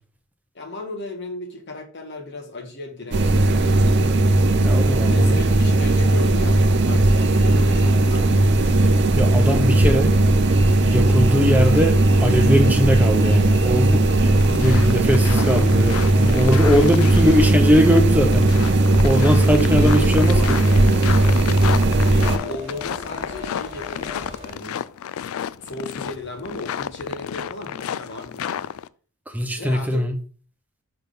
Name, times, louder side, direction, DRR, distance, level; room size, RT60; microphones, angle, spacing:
voice 1, 0.5-3.9 4.8-8.7 19.5-21.1 21.9-24.8 25.4-28.7 29.6-30.1, left 2 dB, 50° left, 1.4 m, -36 dB
sound 1, 3.1-22.4, right 2 dB, 50° right, 0.6 m, -17 dB
voice 2, 4.6-5.4 9.2-10.1 10.8-18.5 19.0-20.4 29.3-30.2, equal, 5° right, 0.7 m, -20 dB
sound 2, 5.9-24.5, equal, 30° right, 1.7 m, -42 dB
sound 3, 14.4-28.9, left 9 dB, 70° left, 0.3 m, -32 dB
5.8 x 3.6 x 5.4 m
head